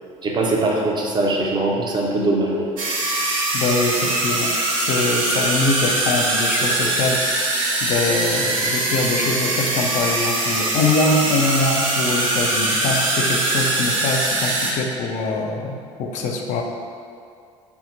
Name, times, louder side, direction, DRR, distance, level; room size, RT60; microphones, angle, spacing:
voice 1, 0.2-2.7, right 2 dB, 25° right, -1 dB, 0.6 m, -21 dB
sound 1, 2.8-14.7, right 2 dB, 75° right, 0.5 m, -22 dB
voice 2, 3.5-7.2 7.8-16.6, left 3 dB, 45° left, 2 dB, 0.4 m, -23 dB
3.5 x 2.0 x 4.0 m, 2.4 s
figure-of-eight pair, 55°, 17 cm